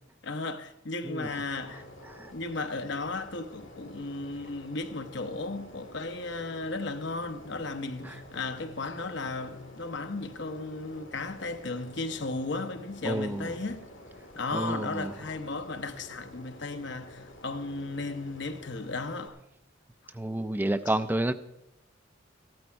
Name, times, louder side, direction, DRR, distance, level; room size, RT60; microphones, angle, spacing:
voice 1, 0.2-1.8 2.3-13.9 14.3-19.4 20.9-21.0, left 3 dB, 65° left, 1.0 m, -35 dB
sound 1, 1.2-19.3, left 1 dB, 80° left, 2.5 m, -50 dB
voice 2, 13.0-13.5 14.5-15.1 20.2-21.3, right 1 dB, 10° right, 0.4 m, -30 dB
15.0 x 12.0 x 4.5 m
head